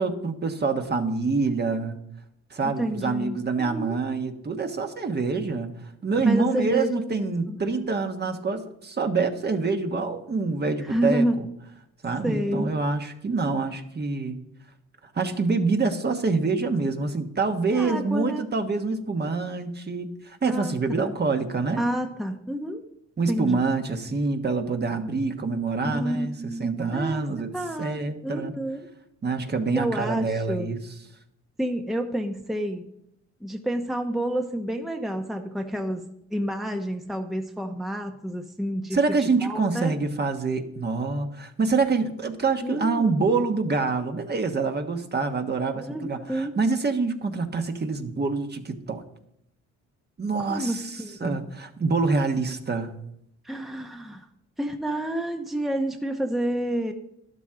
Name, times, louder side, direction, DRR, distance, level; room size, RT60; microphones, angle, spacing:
voice 1, 0.0-2.0 2.5-11.5 12.0-14.4 15.1-21.8 23.2-27.5 27.8-28.5 29.2-30.8 38.9-49.0 50.2-52.9, right 4 dB, 35° right, 6 dB, 1.3 m, -26 dB
voice 2, 2.6-4.0 6.3-7.8 10.9-11.4 12.2-12.7 17.7-18.5 20.4-21.1 21.8-22.8 23.3-23.6 25.9-27.3 27.5-28.9 29.8-30.7 31.6-32.9 33.4-36.0 36.3-39.0 39.4-39.9 42.6-43.2 45.7-46.5 50.4-51.4 53.4-54.3 54.6-56.9, right 1 dB, ahead, 4 dB, 0.8 m, -29 dB
12.0 x 12.0 x 3.7 m, 0.78 s
cardioid pair, 90°, 30 cm